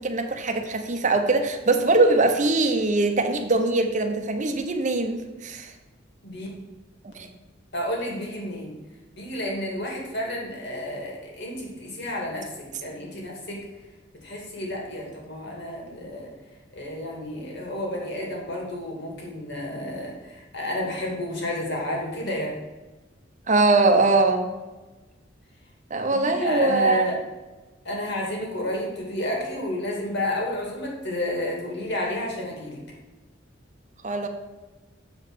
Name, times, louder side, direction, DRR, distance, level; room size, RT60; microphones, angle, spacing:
voice 1, 0.0-5.7 7.0-7.3 23.5-24.5 25.9-27.0 34.0-34.3, right 3 dB, 40° right, 6 dB, 0.9 m, -22 dB
voice 2, 7.7-8.7 9.1-13.6 14.2-16.3 16.7-22.6 26.1-27.2 27.8-32.8, left 1 dB, 60° left, -1 dB, 2.3 m, -31 dB
7.4 x 4.8 x 6.3 m, 1.2 s
head